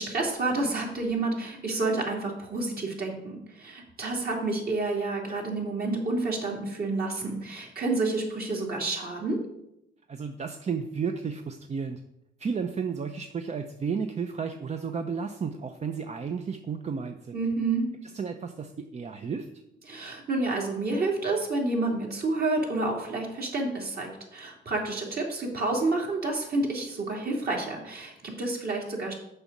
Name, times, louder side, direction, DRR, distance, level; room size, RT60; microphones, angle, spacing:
voice 1, 0.0-9.4 17.3-17.9 19.9-29.1, right 2 dB, 50° right, -1 dB, 2.7 m, -29 dB
voice 2, 10.1-12.0 12.4-17.4 18.0-19.5, right 6 dB, 35° right, 6 dB, 0.6 m, -33 dB
6.8 x 5.4 x 7.2 m, 0.81 s
cardioid pair, 90°, 20 cm